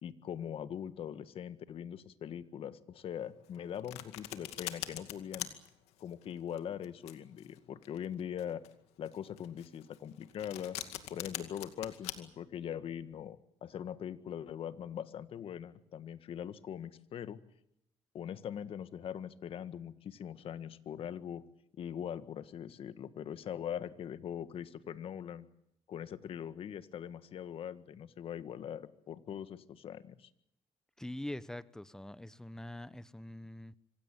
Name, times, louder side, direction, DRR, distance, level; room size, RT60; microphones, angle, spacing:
voice 1, 0.0-5.5 6.0-8.6 9.0-10.8 11.1-17.4 18.1-21.4 21.8-25.5 25.9-30.3, left 9 dB, 65° left, 13 dB, 1.7 m, -42 dB
Domestic sounds home sounds, 3.4-12.1, left 14 dB, 90° left, 2.3 m, -43 dB
voice 2, 31.0-33.7, left 1 dB, 5° left, 16 dB, 1.1 m, -44 dB
25.5 x 17.0 x 9.2 m, 0.78 s
cardioid pair, 85°, 10 cm